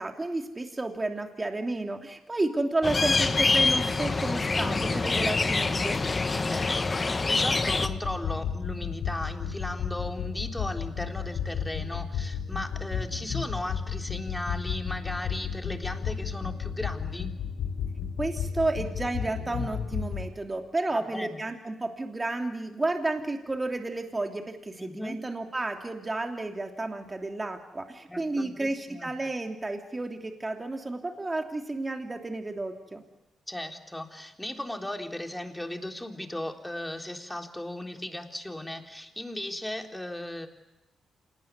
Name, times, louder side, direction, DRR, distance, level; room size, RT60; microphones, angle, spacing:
voice 1, 0.0-6.0 18.2-33.0, right 2 dB, 25° right, 4 dB, 2.9 m, -31 dB
sound 1, 2.8-7.9, left 3 dB, 35° left, 1.6 m, -25 dB
voice 2, 6.4-17.3 20.9-21.4 24.8-25.2 28.1-29.1 33.5-40.5, left 1 dB, 10° left, 4 dB, 3.7 m, -36 dB
sound 2, 7.7-20.3, left 7 dB, 75° left, 3.4 m, -33 dB
27.5 x 19.0 x 9.5 m, 0.96 s
hypercardioid pair, 45°, 0 cm